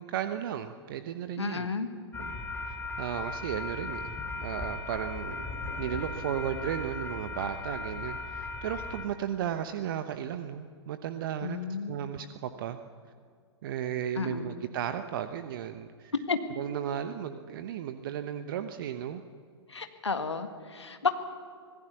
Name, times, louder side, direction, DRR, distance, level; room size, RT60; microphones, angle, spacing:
voice 1, 0.0-1.7 2.2-2.4 2.7-4.1 4.4-5.5 5.8-11.6 11.9-12.8 13.6-16.1 16.5-19.2, right 10 dB, 50° right, 9 dB, 1.0 m, -35 dB
voice 2, 1.4-1.9 11.4-11.9 14.2-14.6 16.3-16.4 19.7-21.1, left 5 dB, 80° left, 8 dB, 1.8 m, -32 dB
sound 1, 2.1-9.1, left 3 dB, 15° left, 2.7 m, -37 dB
sound 2, 5.2-9.0, left 2 dB, 65° left, 6.2 m, -48 dB
25.5 x 18.0 x 7.1 m, 2.1 s
figure-of-eight pair, 105°, 14 cm